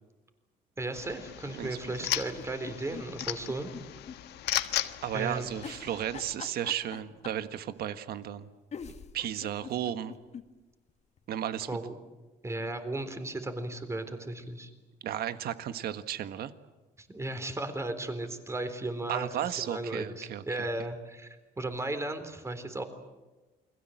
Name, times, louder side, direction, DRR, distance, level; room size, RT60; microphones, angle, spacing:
voice 1, 0.8-3.7 5.1-5.5 11.7-11.9 12.4-14.7 17.0-22.8, right 2 dB, 15° right, 8 dB, 3.8 m, -35 dB
sound 1, 0.9-6.3, left 13 dB, 75° left, 1.4 m, -36 dB
sound 2, 2.3-4.2 4.5-4.6 5.6-7.5 8.4-8.5 8.7-10.5 10.9-11.0 11.2-11.3, left 6 dB, 40° left, 2.0 m, -43 dB
voice 2, 5.0-8.5 9.1-10.1 11.3-11.7 15.0-16.5 19.1-20.7, right 10 dB, 65° right, 11 dB, 1.6 m, -34 dB
29.0 x 22.0 x 7.8 m, 1.2 s
cardioid pair, 110°, 17 cm